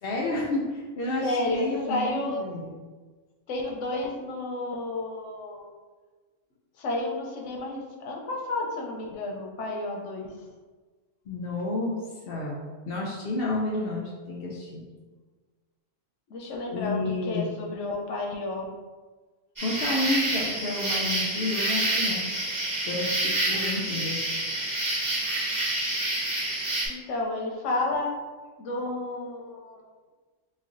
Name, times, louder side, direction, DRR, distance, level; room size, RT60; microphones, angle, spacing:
voice 1, 0.0-2.7 11.3-12.0 12.3-14.8 16.7-17.5 19.6-22.2 22.8-24.2, left 2 dB, 85° left, -2 dB, 0.5 m, -30 dB
voice 2, 1.2-2.4 3.5-5.7 6.8-10.3 16.3-18.7 26.9-28.1 28.6-29.8, left 2 dB, 60° left, -1 dB, 0.9 m, -31 dB
sound 1, 19.6-26.9, right 1 dB, 15° right, 0.9 m, -28 dB
3.1 x 2.4 x 3.7 m, 1.4 s
omnidirectional pair, 1.6 m